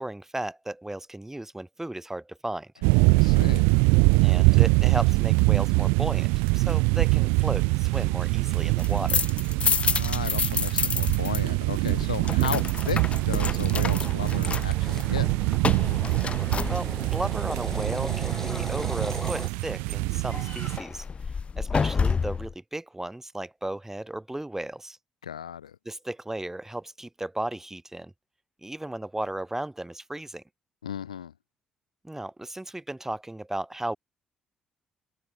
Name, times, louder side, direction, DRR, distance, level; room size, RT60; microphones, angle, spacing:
voice 1, 0.0-2.7 4.2-9.3 16.7-21.0 21.6-25.0 25.8-28.1 28.6-30.4 32.0-34.0, right 1 dB, 10° right, 4.5 m, -35 dB
sound 1, 2.8-20.8, right 32 dB, 70° right, 0.5 m, -24 dB
voice 2, 3.1-3.8 9.7-13.0 13.3-15.3 25.2-25.8 30.8-31.3, left 9 dB, 85° left, 2.0 m, -35 dB
sound 2, 8.6-11.4 11.7-17.2 20.3-22.5, left 5 dB, 35° left, 0.5 m, -29 dB
sound 3, 13.0-19.5, left 1 dB, 10° left, 6.0 m, -38 dB
figure-of-eight pair, 45°, 3 cm